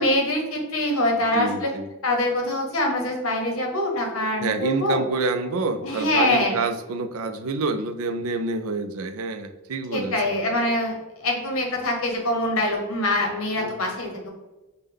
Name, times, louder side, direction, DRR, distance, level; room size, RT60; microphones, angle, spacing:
voice 1, 0.0-1.7 2.0-5.0 5.8-6.6 9.9-14.3, left 1 dB, 70° left, 1 dB, 1.0 m, -24 dB
voice 2, 1.3-1.9 4.4-10.4 13.6-13.7, right 3 dB, 75° right, 9 dB, 0.4 m, -27 dB
5.3 x 2.2 x 3.4 m, 1.1 s
head